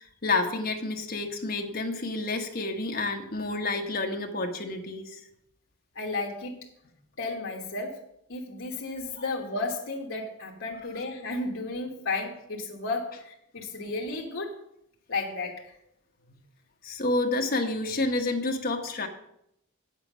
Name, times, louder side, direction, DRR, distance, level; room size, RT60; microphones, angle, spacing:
voice 1, 0.0-5.2 16.8-19.1, left 2 dB, 45° left, 3 dB, 1.2 m, -29 dB
voice 2, 5.9-6.7 7.2-8.0 8.3-14.5 15.1-15.7, left 3 dB, 65° left, -2 dB, 1.3 m, -33 dB
8.3 x 7.3 x 6.1 m, 0.77 s
head